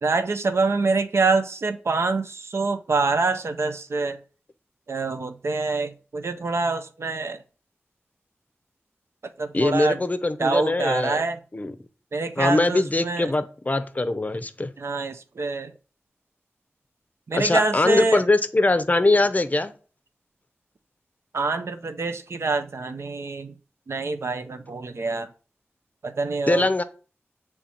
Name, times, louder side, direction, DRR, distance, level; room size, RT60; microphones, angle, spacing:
voice 1, 0.0-4.2 4.9-7.4 9.4-10.0 10.4-11.4 12.1-13.3 14.8-15.7 17.3-18.2 21.3-23.5 23.9-25.3 26.0-26.7, right 3 dB, 75° right, 0.5 m, -25 dB
voice 2, 9.5-11.2 11.5-11.7 12.4-14.7 17.4-19.7 26.5-26.8, left 2 dB, 35° left, 0.6 m, -22 dB
7.0 x 3.2 x 4.3 m
wide cardioid pair, 55°, 5 cm